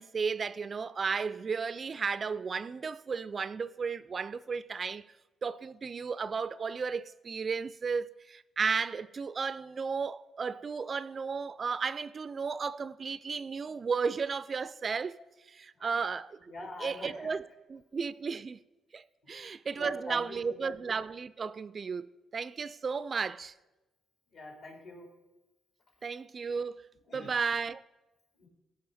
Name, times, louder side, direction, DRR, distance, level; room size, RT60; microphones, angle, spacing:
voice 1, 0.0-5.0 5.4-15.2 15.5-16.5 16.8-18.6 18.9-23.5 26.0-26.8 27.1-27.8, right 5 dB, 40° right, 0.3 m, -34 dB
voice 2, 16.5-17.3 19.2-20.7 24.3-25.1 27.1-27.3 28.4-28.5, left 2 dB, 65° left, 3.7 m, -45 dB
15.0 x 5.2 x 4.1 m
cardioid pair, 90°, 0 cm